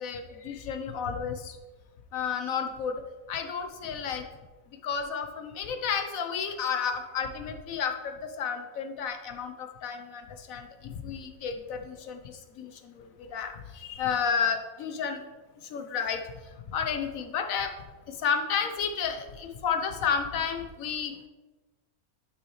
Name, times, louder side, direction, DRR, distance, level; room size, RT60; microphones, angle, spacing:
voice 1, 0.0-1.6 2.1-3.0 3.3-4.2 4.8-15.2 15.7-16.2 16.7-17.7 18.1-21.3, left 6 dB, 65° left, 6 dB, 1.2 m, -32 dB
11.5 x 6.0 x 3.2 m, 1.2 s
omnidirectional pair, 1.6 m